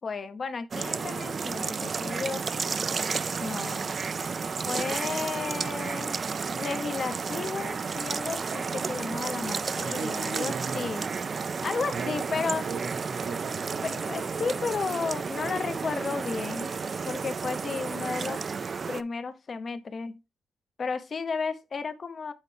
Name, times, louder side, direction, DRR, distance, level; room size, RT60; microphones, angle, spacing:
voice 1, 0.0-2.4 3.4-3.9 4.7-6.2 6.5-11.0 11.6-12.6 13.8-16.7 17.1-18.4 18.9-20.2 20.8-22.3, left 4 dB, 40° left, 0.7 m, -33 dB
sound 1, 0.7-19.0, right 5 dB, 35° right, 0.3 m, -32 dB
voice 2, 9.8-10.9 11.9-14.0, right 5 dB, 80° right, 1.1 m, -38 dB
8.1 x 4.5 x 3.2 m
wide cardioid pair, 135°, 0 cm